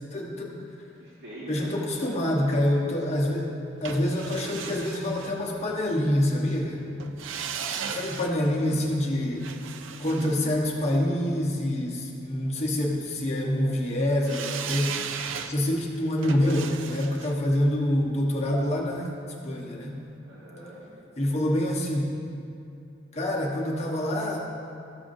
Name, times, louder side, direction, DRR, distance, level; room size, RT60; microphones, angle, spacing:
voice 1, 0.1-0.5 1.5-3.5 3.8-6.8 7.9-9.5 10.0-15.1 15.4-19.1 19.4-20.0 21.2-22.2 23.1-24.4, left 1 dB, 35° left, -2 dB, 1.0 m, -26 dB
voice 2, 1.0-2.4 7.5-8.9 9.9-10.4 20.2-20.9, equal, 65° right, -8 dB, 1.5 m, -43 dB
sound 1, 3.9-6.0 7.0-11.3 14.3-19.3 19.6-19.7, right 7 dB, 85° right, 0.4 m, -38 dB
14.0 x 7.0 x 2.6 m, 2.7 s
head